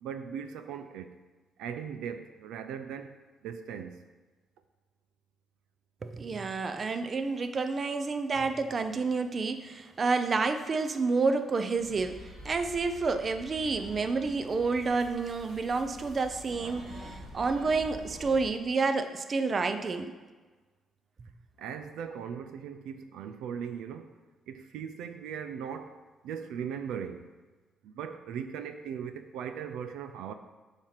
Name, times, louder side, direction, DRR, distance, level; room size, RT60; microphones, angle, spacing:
voice 1, 0.0-1.2 1.6-3.2 3.4-4.0 21.6-24.1 24.5-26.0 26.2-27.3 27.8-30.3, right 7 dB, 90° right, 0.4 m, -39 dB
voice 2, 6.0-20.1, right 4 dB, 40° right, 0.6 m, -29 dB
sound 1, 11.8-18.5, equal, 70° right, 2.2 m, -47 dB
7.2 x 5.0 x 5.8 m
cardioid pair, 90°, 0 cm